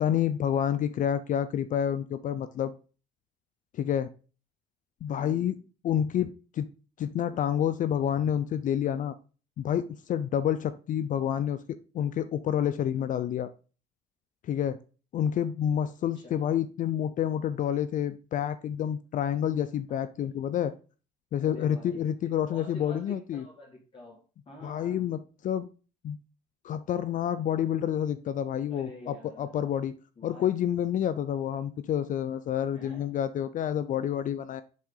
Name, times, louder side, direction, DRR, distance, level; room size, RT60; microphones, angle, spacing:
voice 1, 0.0-2.8 3.7-4.1 5.0-5.5 5.8-6.7 7.0-9.2 9.6-13.5 14.4-14.8 15.1-20.7 21.3-23.4 24.6-25.7 26.0-26.2 26.6-29.9 30.2-34.6, left 9 dB, 50° left, 12 dB, 0.4 m, -29 dB
voice 2, 5.2-5.5 12.9-13.1 16.2-16.6 21.4-22.1 22.5-25.0 28.7-29.5 30.2-30.5 32.7-33.2, left 1 dB, 30° left, -2 dB, 1.9 m, -48 dB
7.4 x 3.6 x 3.8 m, 0.35 s
cardioid pair, 110°, 17 cm